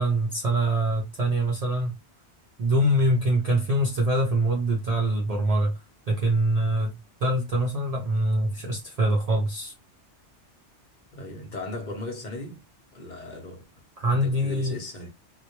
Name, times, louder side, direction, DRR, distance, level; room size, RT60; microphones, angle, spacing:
voice 1, 0.0-1.9 2.6-5.7 6.1-9.7 14.0-14.8, right 1 dB, 55° right, 0.4 m, -24 dB
voice 2, 11.1-12.6 12.9-13.6 14.1-15.1, left 2 dB, 50° left, 0.7 m, -37 dB
2.2 x 2.0 x 2.8 m
omnidirectional pair, 1.2 m